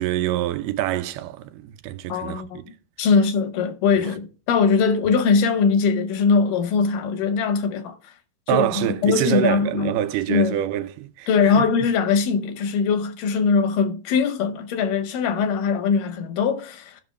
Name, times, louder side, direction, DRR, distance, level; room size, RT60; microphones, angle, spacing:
voice 1, 0.0-2.4 4.0-4.1 8.5-11.7, right 13 dB, 90° right, 2.3 m, -25 dB
voice 2, 2.1-2.6 3.0-8.1 8.5-9.9 10.3-10.5 11.3-17.0, left 5 dB, 85° left, 2.5 m, -21 dB
15.5 x 5.8 x 2.2 m
omnidirectional pair, 3.7 m